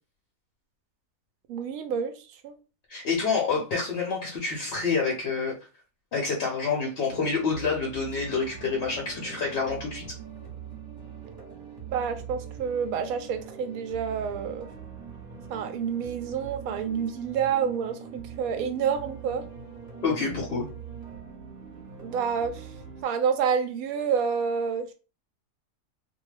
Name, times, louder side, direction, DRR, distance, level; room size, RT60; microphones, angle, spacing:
voice 1, 1.5-2.1 2.4-2.5 11.9-14.7 15.5-19.4 22.0-22.7 23.0-24.9, right 7 dB, 70° right, 0.9 m, -28 dB
voice 2, 2.9-5.6 6.1-10.0 20.0-20.7, left 4 dB, 55° left, 0.7 m, -27 dB
sound 1, 7.1-23.0, right 7 dB, 40° right, 0.8 m, -42 dB
2.6 x 2.3 x 3.2 m
omnidirectional pair, 1.7 m